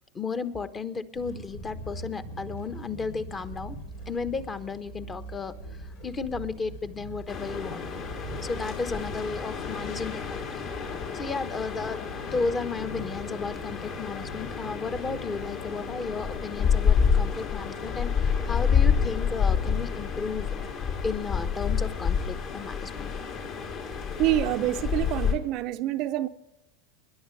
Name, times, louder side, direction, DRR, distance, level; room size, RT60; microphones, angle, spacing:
voice 1, 0.1-3.8 4.1-8.0 8.4-10.6 11.1-20.5 21.0-23.1, left 4 dB, 25° left, 1.2 m, -34 dB
sound 1, 1.1-20.7, right 1 dB, 80° left, 2.6 m, -43 dB
sound 2, 7.3-25.3, left 7 dB, 55° left, 3.4 m, -29 dB
voice 2, 24.2-26.3, right 14 dB, 50° right, 0.6 m, -26 dB
27.5 x 11.0 x 3.3 m
hypercardioid pair, 90°, 0 cm